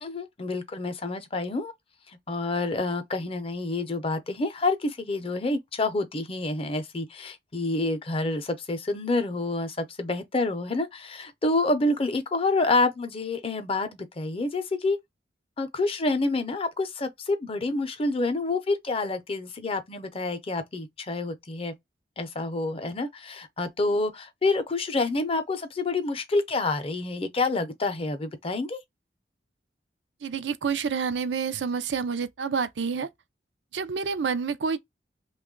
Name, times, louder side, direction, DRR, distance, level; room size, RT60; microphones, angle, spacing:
voice 1, 0.0-1.7 2.3-15.0 15.6-21.7 22.2-28.8, left 2 dB, 35° left, 0.6 m, -28 dB
voice 2, 30.2-33.1 33.7-34.8, right 5 dB, 90° right, 0.5 m, -28 dB
3.0 x 2.3 x 3.6 m
head